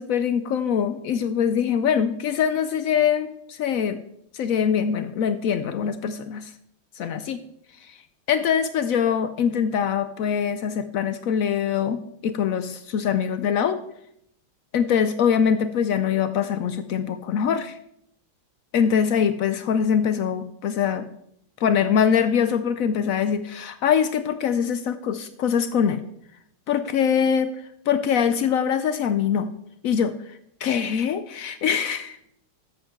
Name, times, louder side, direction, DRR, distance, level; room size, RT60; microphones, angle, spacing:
voice 1, 0.0-4.0 4.3-6.5 7.0-7.4 7.9-8.0 8.3-13.8 14.7-17.8 18.7-21.1 21.6-26.0 26.7-27.5 27.9-29.5 29.8-30.1 30.6-32.2, left 7 dB, 75° left, 11 dB, 0.7 m, -23 dB
13.0 x 8.1 x 3.7 m, 0.74 s
omnidirectional pair, 2.1 m